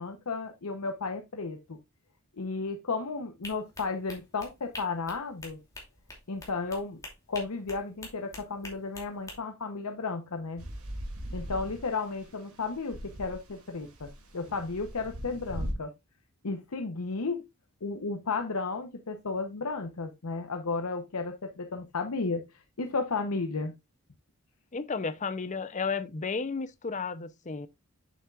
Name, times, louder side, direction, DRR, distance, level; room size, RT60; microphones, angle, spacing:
voice 1, 0.0-1.8 2.4-5.6 6.3-7.0 7.3-10.7 11.3-15.9 16.4-17.4 17.8-23.7, left 4 dB, 80° left, 0.8 m, -33 dB
sound 1, 3.4-9.4, left 2 dB, 15° left, 2.6 m, -46 dB
sound 2, 10.6-12.3 12.6-15.7, equal, 70° right, 2.4 m, -39 dB
voice 2, 24.7-27.7, left 4 dB, 35° left, 0.6 m, -33 dB
8.3 x 7.1 x 2.4 m
head